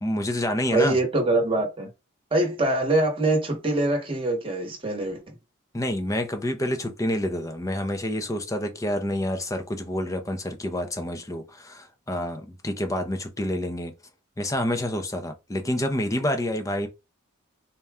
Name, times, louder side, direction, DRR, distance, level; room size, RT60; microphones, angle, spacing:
voice 1, 0.0-1.0 5.7-13.9 14.4-16.9, left 1 dB, 15° left, 0.5 m, -28 dB
voice 2, 0.7-1.9 2.3-5.2, right 2 dB, 25° right, 1.0 m, -23 dB
4.1 x 2.2 x 3.5 m
head